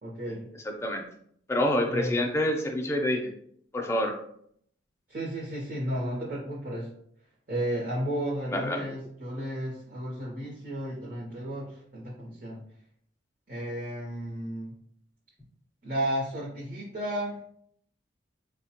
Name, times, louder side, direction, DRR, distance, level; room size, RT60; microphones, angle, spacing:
voice 1, 0.0-0.5 1.9-2.2 5.1-6.9 7.5-12.6 13.5-14.7 15.8-17.4, right 1 dB, 45° right, -5 dB, 0.7 m, -33 dB
voice 2, 1.5-3.3 3.7-4.2 8.5-8.9, left 1 dB, 15° left, 1 dB, 0.4 m, -27 dB
4.2 x 2.1 x 2.8 m, 0.66 s
head